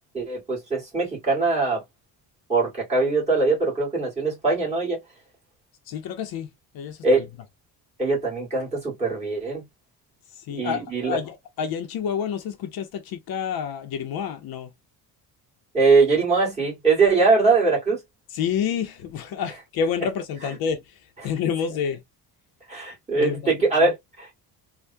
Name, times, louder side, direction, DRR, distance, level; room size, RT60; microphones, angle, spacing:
voice 1, 0.1-1.8 2.5-5.0 7.0-7.3 8.0-9.6 10.5-11.2 15.7-18.0 22.7-24.3, right 3 dB, 15° right, 1.8 m, -22 dB
voice 2, 5.9-7.2 10.4-14.7 18.3-21.0 21.2-22.0 23.1-23.9, left 7 dB, 65° left, 0.7 m, -29 dB
3.3 x 2.2 x 2.6 m
cardioid pair, 175°, 40 cm